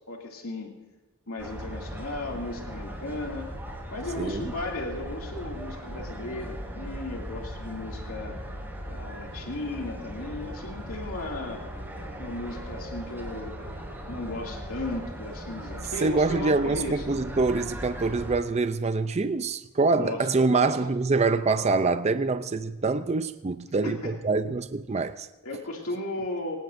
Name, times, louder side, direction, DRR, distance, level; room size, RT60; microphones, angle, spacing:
voice 1, 0.1-0.7 1.3-3.5 3.9-8.4 8.9-11.6 12.2-13.7 14.1-17.2 19.9-20.8 23.8-24.1 25.4-26.6, left 2 dB, 85° left, 2.4 m, -35 dB
sound 1, 1.4-18.3, equal, 10° right, 5.1 m, -38 dB
voice 2, 4.2-4.5 16.0-25.3, right 3 dB, 30° right, 0.5 m, -25 dB
24.0 x 19.0 x 2.6 m
head